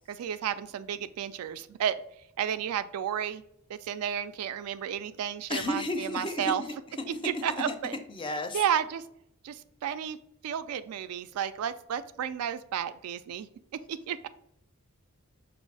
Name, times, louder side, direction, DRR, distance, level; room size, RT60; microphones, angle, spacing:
voice 1, 0.1-1.9 2.4-3.4 3.7-6.6 7.2-7.9 8.5-9.0 9.4-10.2 10.4-13.5 13.9-14.3, right 9 dB, 80° right, 13 dB, 0.3 m, -32 dB
voice 2, 5.5-6.5 7.5-7.7 8.1-8.6, left 2 dB, 25° left, 7 dB, 0.4 m, -32 dB
5.3 x 2.4 x 3.3 m, 0.74 s
head